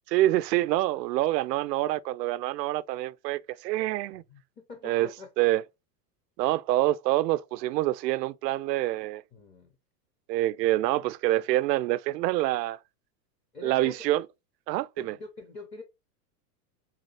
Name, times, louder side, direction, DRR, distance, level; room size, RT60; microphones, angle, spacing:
voice 1, 0.1-4.2 4.8-5.1 5.4-5.6 6.4-9.2 10.3-12.8 13.6-14.3 14.7-15.2, right 16 dB, 80° right, 0.5 m, -26 dB
voice 2, 4.3-5.3 9.3-9.7 13.5-14.0 15.0-15.8, left 3 dB, 15° left, 0.5 m, -44 dB
4.1 x 3.1 x 4.2 m
supercardioid pair, 145°, 50 cm